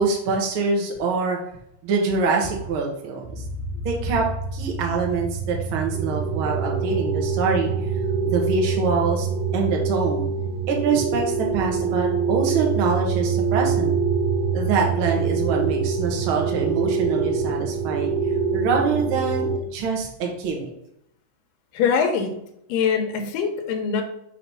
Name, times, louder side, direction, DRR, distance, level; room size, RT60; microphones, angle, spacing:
voice 1, 0.0-1.4 1.8-3.4 3.8-7.9 8.2-9.3 9.5-10.3 10.7-13.9 14.5-18.1 18.5-20.7, right 4 dB, 60° right, 0 dB, 1.5 m, -25 dB
sound 1, 3.2-19.6, right 5 dB, 75° right, 1.9 m, -25 dB
voice 2, 21.7-22.4 22.7-24.0, left 6 dB, 85° left, 4 dB, 2.4 m, -23 dB
5.8 x 3.1 x 5.4 m, 0.78 s
omnidirectional pair, 3.8 m